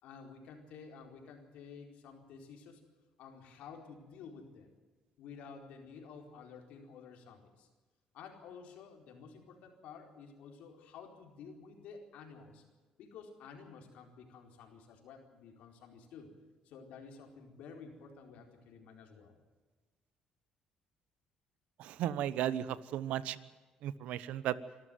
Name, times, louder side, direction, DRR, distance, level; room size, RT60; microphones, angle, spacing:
voice 1, 0.0-2.8 3.2-4.7 5.2-7.7 8.1-12.6 13.0-16.3 16.6-19.4, left 5 dB, 80° left, 3 dB, 4.4 m, -52 dB
voice 2, 21.8-23.4 23.8-24.6, right 11 dB, 85° right, 16 dB, 1.1 m, -35 dB
26.0 x 13.5 x 9.3 m, 1.3 s
cardioid pair, 95°, 2 cm